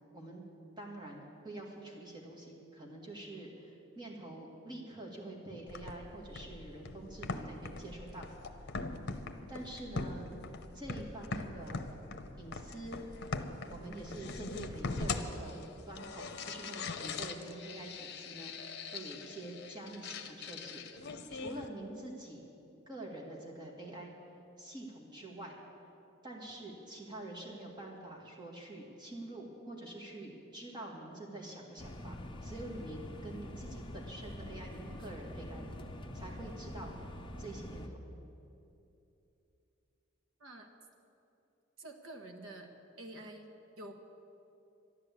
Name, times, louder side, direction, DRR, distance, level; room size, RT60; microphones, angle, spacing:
voice 1, 0.1-0.5 0.8-8.3 9.5-10.3 10.7-11.9 12.4-13.0 13.7-20.8 21.3-22.4 22.9-24.1 24.6-25.6 26.2-35.7 36.1-36.9 37.4-38.0, right 1 dB, 20° right, -2 dB, 2.1 m, -46 dB
sound 1, 5.7-21.7, left 3 dB, 55° left, 0.8 m, -42 dB
sound 2, 31.8-37.9, left 1 dB, 25° left, 0.8 m, -45 dB
voice 2, 41.8-42.7 43.0-43.9, right 1 dB, 75° right, 4 dB, 1.5 m, -48 dB
13.0 x 11.0 x 8.3 m, 2.8 s
head